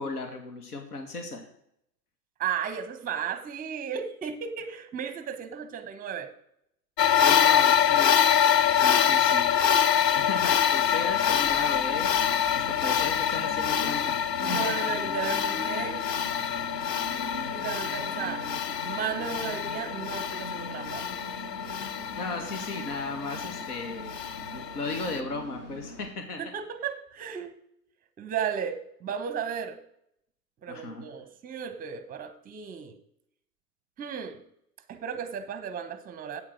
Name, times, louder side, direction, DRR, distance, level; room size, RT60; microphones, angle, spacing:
voice 1, 0.0-1.4 7.2-8.2 8.7-9.5 10.2-12.1 12.5-14.1 14.5-15.0 22.2-26.4 30.7-31.0, left 3 dB, 65° left, 5 dB, 2.1 m, -36 dB
voice 2, 2.4-6.3 14.4-16.0 17.5-18.5 18.8-21.1 26.4-27.5 28.2-29.8 30.6-33.0 34.0-34.4 34.9-36.4, right 7 dB, 15° right, 12 dB, 0.9 m, -34 dB
sound 1, 7.0-25.2, left 8 dB, 85° left, 0.7 m, -25 dB
Train, 7.6-26.1, equal, 45° left, 3.1 m, -42 dB
8.7 x 8.4 x 6.2 m, 0.73 s
figure-of-eight pair, 105°, 49 cm